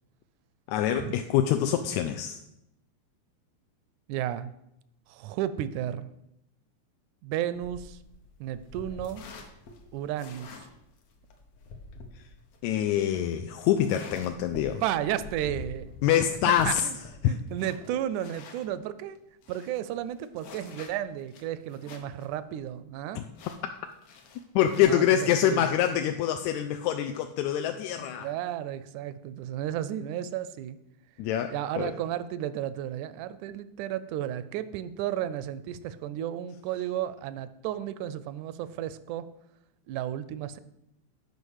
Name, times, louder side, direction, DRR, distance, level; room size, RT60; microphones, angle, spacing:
voice 1, 0.7-2.4 12.6-14.8 16.0-16.8 17.2-17.4 23.2-23.3 24.6-28.3 31.2-31.9, left 10 dB, 80° left, 6 dB, 1.7 m, -25 dB
voice 2, 4.1-4.5 5.1-6.1 7.2-8.0 8.4-9.2 9.9-10.5 14.8-15.9 16.7-17.0 17.3-19.2 19.5-23.2 24.8-25.2 25.4-25.6 28.0-30.8 31.5-39.3 39.9-40.6, right 11 dB, 80° right, 14 dB, 1.9 m, -33 dB
sound 1, 7.5-18.7 19.1-19.2 19.4-22.3 22.6-22.7 23.3-24.8, left 3 dB, 60° left, 1.9 m, -46 dB
9.7 x 5.2 x 6.4 m, 0.83 s
omnidirectional pair, 3.6 m